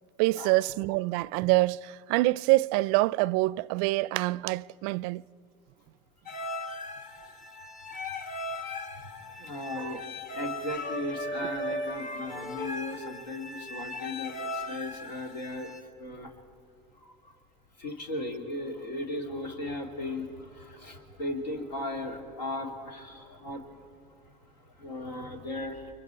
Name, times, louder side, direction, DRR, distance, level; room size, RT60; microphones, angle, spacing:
voice 1, 0.2-5.2 9.8-9.9, right 20 dB, 60° right, 0.4 m, -26 dB
sound 1, 6.3-15.8, left 1 dB, 35° left, 1.5 m, -38 dB
voice 2, 9.4-10.0 10.3-15.7 16.0-16.3 17.0-17.1 17.8-23.6 24.8-25.9, left 1 dB, 85° left, 2.6 m, -36 dB
29.5 x 23.5 x 4.5 m
hypercardioid pair, 85°, 21 cm